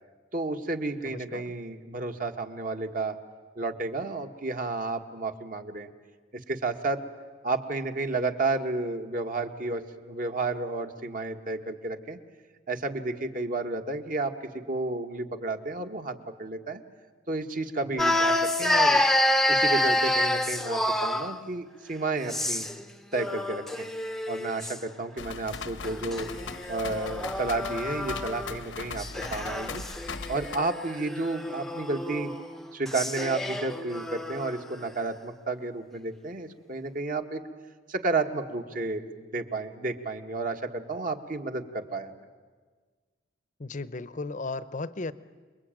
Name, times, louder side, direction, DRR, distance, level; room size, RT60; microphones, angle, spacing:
voice 1, 0.3-3.2 3.5-5.9 6.5-7.0 7.4-12.2 12.7-16.8 17.3-19.0 19.5-22.7 23.1-23.9 24.3-26.3 26.7-29.8 30.3-32.3 32.7-37.4 37.9-42.2, right 3 dB, 45° right, 6 dB, 1.6 m, -31 dB
voice 2, 1.0-1.4 17.9-18.0 43.6-45.1, left 3 dB, 40° left, 15 dB, 0.8 m, -35 dB
sound 1, 18.0-21.4 22.2-22.8 23.1-24.8 25.8-28.6 29.0-34.6, left 1 dB, ahead, 0.8 m, -28 dB
sound 2, 25.2-30.6, left 4 dB, 75° left, 1.1 m, -39 dB
28.0 x 22.0 x 9.0 m, 1.5 s
head